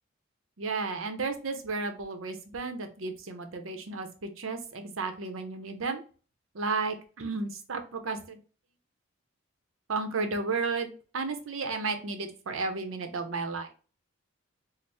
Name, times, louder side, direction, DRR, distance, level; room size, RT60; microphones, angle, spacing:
voice 1, 0.6-6.0 6.5-8.4 9.9-13.7, right 4 dB, 80° right, 7 dB, 0.7 m, -33 dB
4.3 x 2.0 x 3.2 m, 0.37 s
head